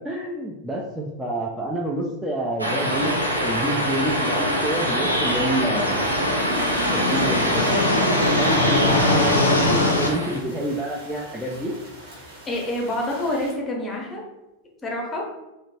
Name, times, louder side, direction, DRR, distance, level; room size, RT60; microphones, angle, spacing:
voice 1, 0.0-6.1 6.9-7.8 8.3-11.7, right 1 dB, 5° right, -4 dB, 0.3 m, -28 dB
sound 1, 2.6-10.4, equal, 85° right, 0.5 m, -24 dB
sound 2, 2.9-10.1, left 2 dB, 80° left, 0.4 m, -24 dB
sound 3, 5.9-13.5, right 1 dB, 55° right, 1.0 m, -44 dB
voice 2, 12.5-14.2 14.8-15.2, left 1 dB, 20° left, -1 dB, 0.7 m, -27 dB
2.8 x 2.2 x 2.8 m, 0.98 s
figure-of-eight pair, 90°, 0 cm